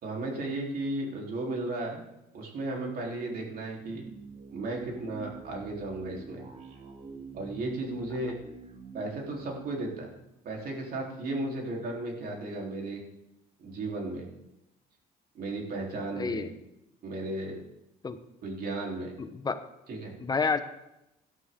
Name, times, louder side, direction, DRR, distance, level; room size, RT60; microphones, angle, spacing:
voice 1, 0.0-2.0 2.3-4.1 4.5-6.4 7.3-8.4 8.9-10.1 10.4-13.0 13.6-14.3 15.4-16.5 17.0-17.6 18.4-19.1 19.9-20.1, right 2 dB, 60° right, 0 dB, 3.8 m, -34 dB
sound 1, 3.8-11.0, right 4 dB, 45° right, 2.5 m, -48 dB
voice 2, 16.2-16.5 18.0-18.2 19.2-19.6 20.2-20.6, left 4 dB, 25° left, 10 dB, 1.1 m, -29 dB
17.0 x 11.5 x 3.8 m, 0.89 s
cardioid pair, 110°, 17 cm